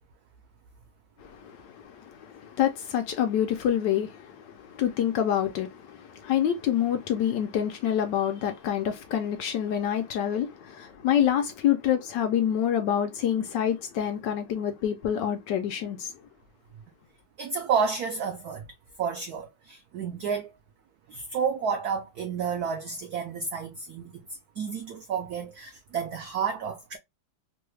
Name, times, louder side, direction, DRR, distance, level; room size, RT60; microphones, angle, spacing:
voice 1, 1.2-16.1, left 10 dB, 75° left, 1.1 m, -27 dB
voice 2, 17.4-18.7 19.0-20.5 21.1-24.3 24.6-27.0, right 6 dB, 85° right, 0.8 m, -30 dB
3.3 x 2.3 x 3.0 m
omnidirectional pair, 2.2 m